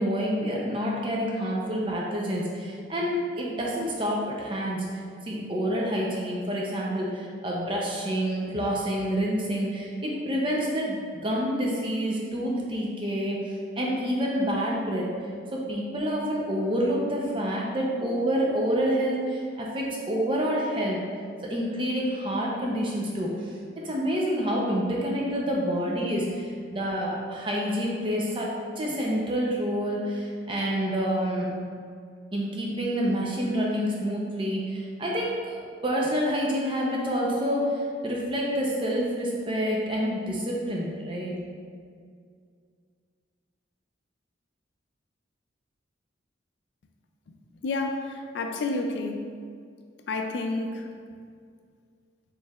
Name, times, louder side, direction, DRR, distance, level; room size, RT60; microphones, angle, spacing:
voice 1, 0.0-4.8 5.2-13.4 13.8-15.1 15.5-21.0 21.4-23.3 23.8-28.5 28.8-31.5 32.3-41.3, equal, 25° right, -3 dB, 0.5 m, -28 dB
voice 2, 47.6-49.2 50.1-50.9, left 2 dB, 60° left, 4 dB, 0.3 m, -30 dB
4.4 x 3.2 x 2.3 m, 2.1 s
head